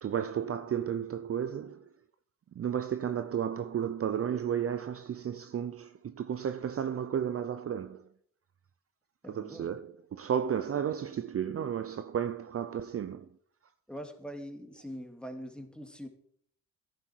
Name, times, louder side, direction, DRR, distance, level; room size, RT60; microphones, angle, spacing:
voice 1, 0.0-1.9 2.5-8.1 9.3-13.3, right 9 dB, 40° right, 0.7 m, -33 dB
voice 2, 9.2-9.7 13.9-16.1, equal, 5° left, 2.4 m, -43 dB
13.0 x 11.0 x 4.6 m
cardioid pair, 85°, 36 cm